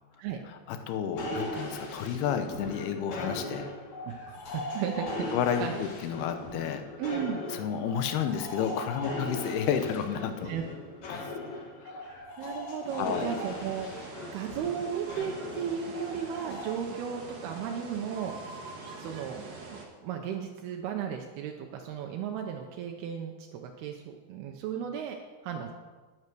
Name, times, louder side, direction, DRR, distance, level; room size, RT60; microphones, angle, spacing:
voice 1, 0.7-3.7 5.3-6.8 7.5-10.5 11.1-11.3 11.8-12.1 13.0-13.3, left 8 dB, 85° left, 8 dB, 2.9 m, -31 dB
sound 1, 1.1-16.7, left 2 dB, 55° left, 2.9 m, -39 dB
voice 2, 4.0-5.3 5.6-5.8 7.0-7.4 9.1-9.2 10.4-10.6 12.0-13.9 14.3-18.3 19.0-19.4 20.0-25.2 25.4-25.7, right 8 dB, 80° right, 2 dB, 2.8 m, -35 dB
sound 2, 12.9-19.9, right 3 dB, 50° right, 1.3 m, -45 dB
sound 3, 13.4-13.5 13.9-14.0 14.8-16.2 16.5-16.6 16.9-17.0 17.4-17.5 18.0-19.8, right 5 dB, 65° right, 1.9 m, -46 dB
10.5 x 9.5 x 6.1 m, 1.3 s
omnidirectional pair, 4.5 m